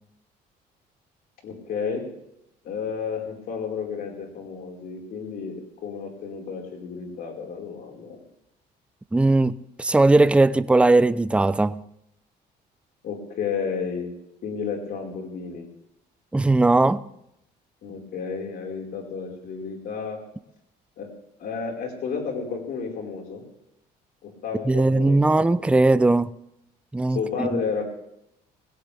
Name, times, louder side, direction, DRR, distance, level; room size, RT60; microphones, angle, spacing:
voice 1, 1.4-2.0 2.6-5.6 5.8-8.2 13.0-14.1 14.4-15.7 17.8-20.2 21.0-21.1 21.4-23.4 24.2-25.5 27.1-27.8, left 6 dB, 65° left, 4.9 m, -32 dB
voice 2, 9.1-11.8 16.3-17.0 24.6-26.3 26.9-27.6, right 2 dB, 5° right, 0.5 m, -19 dB
20.0 x 17.5 x 3.5 m
cardioid pair, 110°, 17 cm